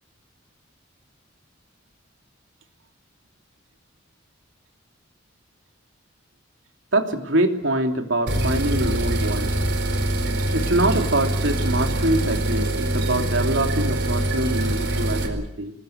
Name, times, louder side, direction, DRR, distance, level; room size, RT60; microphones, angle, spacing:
voice 1, 6.9-9.5 10.5-15.7, right 1 dB, 80° right, 4 dB, 3.0 m, -24 dB
sound 1, 8.3-15.3, right 1 dB, 55° right, 4.5 m, -24 dB
26.5 x 20.5 x 8.0 m, 0.74 s
head